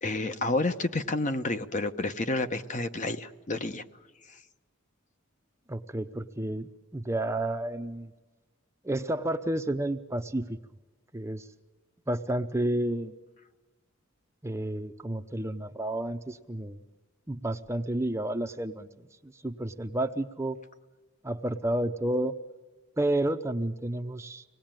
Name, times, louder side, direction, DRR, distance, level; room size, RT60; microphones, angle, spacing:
voice 1, 0.0-3.8 4.3-4.4, left 2 dB, 35° left, 9 dB, 1.0 m, -30 dB
voice 2, 5.7-8.1 8.8-10.6 11.1-11.5 12.1-13.1 14.4-16.8 17.3-20.6 21.2-22.4 23.0-24.4, right 1 dB, 15° right, 8 dB, 0.7 m, -31 dB
25.5 x 19.5 x 9.0 m, 1.3 s
head